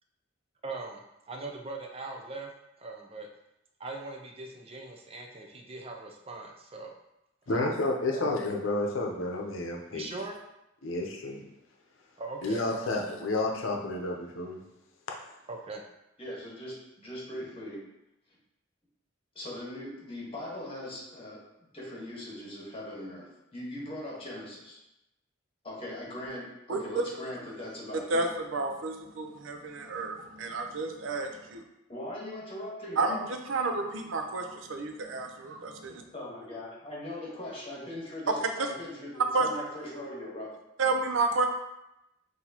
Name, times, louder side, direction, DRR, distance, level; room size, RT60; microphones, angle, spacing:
voice 1, 0.6-1.0 1.3-2.5 2.8-3.3 3.8-6.9 7.5-7.7 8.1-8.3 9.9-10.3 12.2-13.0 15.5-15.8, right 3 dB, 30° right, 1 dB, 0.5 m, -40 dB
voice 2, 7.5-10.1 10.8-11.4 12.4-14.6, left 2 dB, 90° left, 1 dB, 0.7 m, -30 dB
voice 3, 16.2-17.8 19.3-21.4 21.7-24.8 25.6-28.2 31.9-33.2 36.1-40.5, left 1 dB, 30° left, -5 dB, 1.4 m, -40 dB
voice 4, 26.7-27.0 28.1-31.6 33.0-36.0 38.4-38.7 39.3-39.5 40.8-41.5, right 3 dB, 75° right, 4 dB, 0.6 m, -30 dB
6.0 x 2.8 x 2.9 m, 0.88 s
head